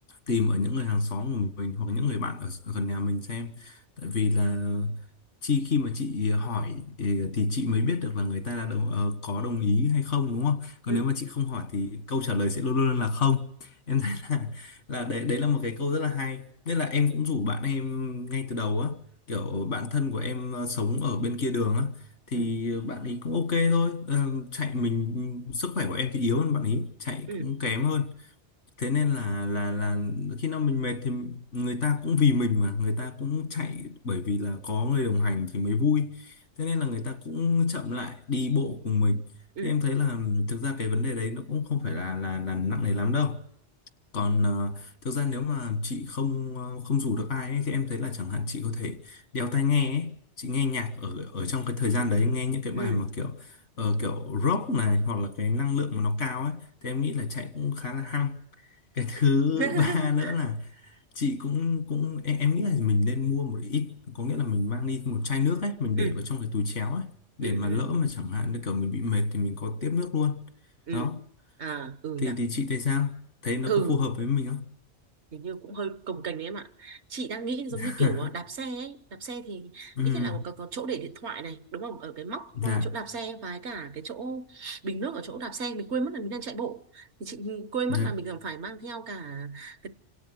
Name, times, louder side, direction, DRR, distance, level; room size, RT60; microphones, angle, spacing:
voice 1, 0.3-5.0 5.4-19.0 19.3-28.3 28.8-39.2 39.6-43.4 44.1-50.1 50.4-58.4 58.9-67.1 67.4-70.4 70.9-71.2 72.2-73.2 73.4-74.7 77.7-78.3 80.0-80.4 82.6-82.9 87.9-88.1, left 4 dB, 80° left, 2.0 m, -28 dB
voice 2, 52.7-53.0 59.5-60.3 66.0-66.3 67.4-68.0 70.9-71.2 71.6-72.4 73.7-74.1 75.3-89.9, right 5 dB, 70° right, 1.5 m, -34 dB
27.0 x 17.5 x 7.9 m
omnidirectional pair, 1.2 m